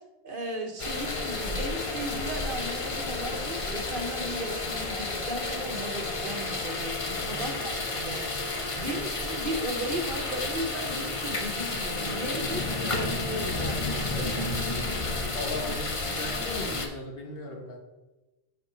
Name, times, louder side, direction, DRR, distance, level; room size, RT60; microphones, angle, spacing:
voice 1, 0.2-7.0 7.2-14.6, right 1 dB, 55° right, 3 dB, 1.2 m, -36 dB
sound 1, 0.8-16.9, left 3 dB, 35° left, 0.8 m, -31 dB
voice 2, 15.3-17.8, left 2 dB, 65° left, 1 dB, 1.4 m, -37 dB
9.7 x 4.2 x 4.4 m, 1.1 s
omnidirectional pair, 1.1 m